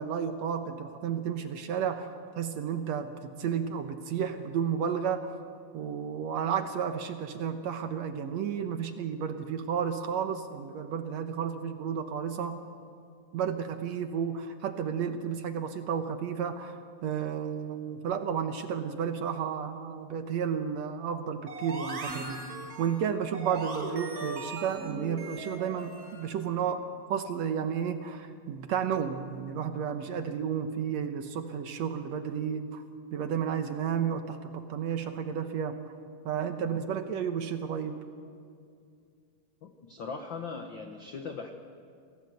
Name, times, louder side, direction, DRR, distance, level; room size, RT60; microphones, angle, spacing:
voice 1, 0.0-2.1 2.4-5.3 5.7-12.6 13.3-16.8 17.0-22.4 22.8-26.8 27.1-32.8 33.1-35.8 36.3-38.0, right 7 dB, 65° right, 7 dB, 1.9 m, -32 dB
sound 1, 21.5-26.4, right 3 dB, 35° right, 1.5 m, -39 dB
voice 2, 39.6-41.5, left 5 dB, 90° left, 5 dB, 1.0 m, -39 dB
27.0 x 17.5 x 7.9 m, 2.3 s
omnidirectional pair, 3.9 m